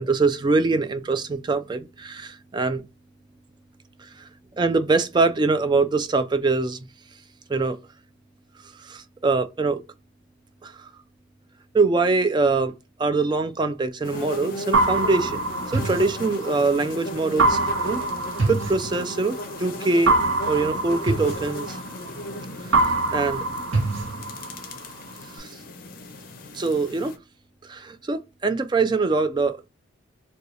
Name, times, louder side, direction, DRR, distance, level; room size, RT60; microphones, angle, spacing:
voice 1, 0.0-2.8 4.0-4.3 4.6-6.8 7.5-7.8 8.8-9.8 10.6-10.7 11.7-12.7 13.0-15.4 15.7-18.0 18.5-20.2 20.5-21.8 22.6-23.4 25.4-25.5 26.5-27.1 27.7-29.7, right 3 dB, 20° right, 0.3 m, -23 dB
sound 1, 14.0-27.2, left 1 dB, 45° left, 0.5 m, -36 dB
sound 2, 14.7-16.8 17.4-19.5 20.1-22.4 22.7-24.8, right 3 dB, 70° right, 0.7 m, -24 dB
2.8 x 2.3 x 3.9 m
head